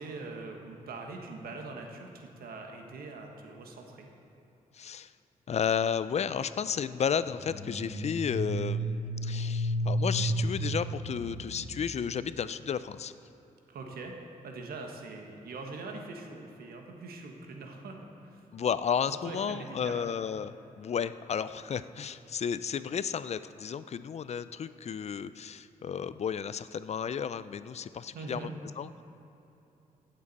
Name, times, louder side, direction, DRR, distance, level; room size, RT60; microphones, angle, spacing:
voice 1, 0.0-4.1 13.7-14.1 14.4-18.0 18.2-18.4 19.2-20.2 28.1-28.5, right 3 dB, 90° right, 2 dB, 1.3 m, -42 dB
voice 2, 4.7-5.1 5.5-13.1 18.5-28.5 28.8-29.0, left 7 dB, 45° left, 14 dB, 0.4 m, -33 dB
sound 1, 7.1-12.0, right 1 dB, 80° left, 1.5 m, -32 dB
15.5 x 7.4 x 4.1 m, 3.0 s
cardioid pair, 80°, 15 cm